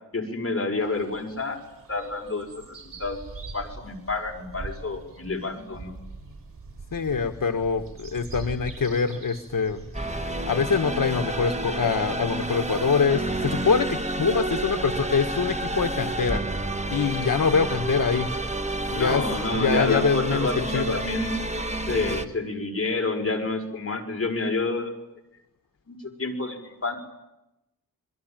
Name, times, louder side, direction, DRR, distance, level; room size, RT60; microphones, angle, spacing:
voice 1, 0.1-1.6 1.9-3.2 3.5-5.9 18.9-21.3 21.9-24.9 25.9-27.0, left 3 dB, 40° left, 3 dB, 6.1 m, -29 dB
sound 1, 0.8-16.1, right 3 dB, 65° right, 7.9 m, -44 dB
voice 2, 6.9-9.8 10.5-16.4 16.9-18.3 18.9-19.2 19.5-20.9, left 5 dB, 65° left, 6 dB, 1.5 m, -24 dB
sound 2, 9.9-22.3, right 2 dB, 20° right, 2.0 m, -30 dB
27.0 x 22.5 x 9.1 m, 0.90 s
wide cardioid pair, 100°, 36 cm